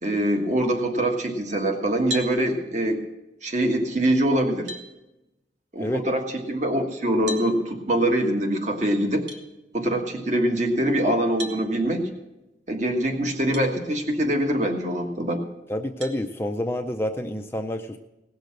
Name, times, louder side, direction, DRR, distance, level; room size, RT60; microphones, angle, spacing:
voice 1, 0.0-3.0 3.4-4.7 5.7-9.2 9.7-12.1 12.7-15.4, right 1 dB, 40° right, 3 dB, 1.5 m, -24 dB
sound 1, 2.1-2.4 4.0-4.1 4.7-4.9 7.3-7.5 9.3-9.4 11.4-11.6 13.5-13.7 14.3-14.4 16.0-16.2, equal, 85° right, 1.6 m, -34 dB
voice 2, 15.7-18.0, left 1 dB, 15° left, 5 dB, 0.4 m, -28 dB
17.5 x 6.6 x 7.5 m, 0.96 s
head